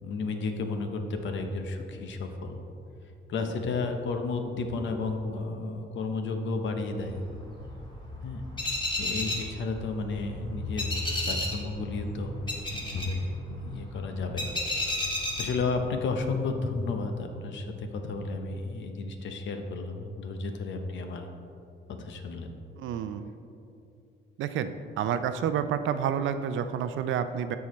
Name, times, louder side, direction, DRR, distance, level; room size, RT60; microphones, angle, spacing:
voice 1, 0.0-2.6 3.3-7.2 8.2-8.4 9.0-10.9 11.3-12.3 12.7-13.2 13.5-14.6 15.4-21.3 21.9-22.5, left 3 dB, 70° left, 5 dB, 0.9 m, -32 dB
sound 1, 7.0-16.0, left 1 dB, 25° left, 1.6 m, -33 dB
voice 2, 22.8-23.3 24.4-27.6, right 8 dB, 75° right, 10 dB, 0.5 m, -29 dB
12.5 x 4.7 x 3.1 m, 2.6 s
cardioid pair, 90°, 20 cm